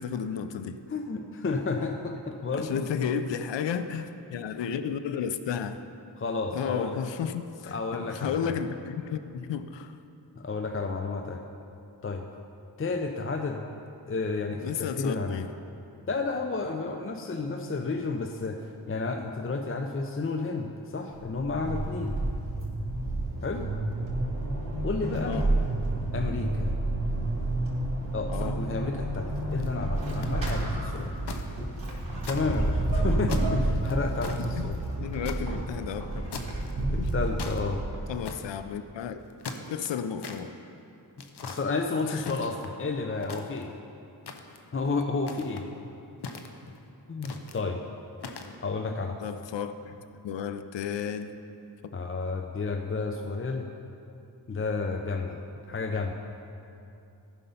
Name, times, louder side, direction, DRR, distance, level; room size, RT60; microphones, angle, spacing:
voice 1, 0.0-0.8 2.5-5.8 6.5-10.0 14.6-15.5 25.2-25.5 28.3-28.6 34.4-34.7 35.0-36.3 37.0-37.1 38.1-39.2 39.7-40.5 42.1-42.4 49.2-51.4, left 7 dB, 85° left, 10 dB, 0.5 m, -33 dB
voice 2, 0.9-2.9 6.2-7.0 7.7-8.5 10.4-11.4 12.0-12.2 12.8-13.7 14.1-15.4 16.1-22.2 23.4-23.7 24.8-25.4 26.1-26.8 28.1-31.1 32.3-34.8 36.9-37.8 41.4-43.8 44.7-45.7 47.1-47.8 48.6-49.3 51.9-53.7 54.5-55.4 55.6-56.1, left 3 dB, 30° left, 4 dB, 0.6 m, -31 dB
Vehicle / Accelerating revving vroom / Squeak, 21.1-38.3, right 2 dB, 50° right, 2.5 m, -30 dB
sound 1, 29.3-29.7 30.2-31.4 31.8-31.9 32.2-32.9 33.3-35.4 36.3-36.7 37.0-37.6 38.2-38.6 39.2-40.4 41.2-41.6 42.2-42.8 43.2-43.8 44.3-44.7 45.2-45.7 46.2-46.8 47.2-47.6 48.2-48.6, left 4 dB, 70° left, 0.9 m, -40 dB
14.0 x 5.4 x 5.5 m, 2.7 s
wide cardioid pair, 65°, 42 cm